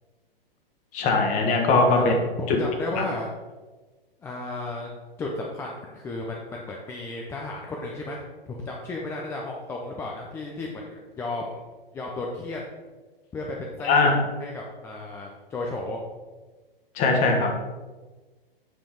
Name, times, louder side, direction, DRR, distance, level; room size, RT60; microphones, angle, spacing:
voice 1, 0.9-2.1 2.5-2.6 3.0-3.1 13.8-14.1 16.9-17.5, left 3 dB, 25° left, 2 dB, 1.3 m, -20 dB
voice 2, 1.9-3.3 4.2-4.9 5.2-11.6 11.9-12.7 13.3-14.1 14.4-16.0, left 2 dB, 10° left, -1 dB, 0.5 m, -34 dB
7.9 x 6.9 x 3.5 m, 1.3 s
figure-of-eight pair, 110°, 29 cm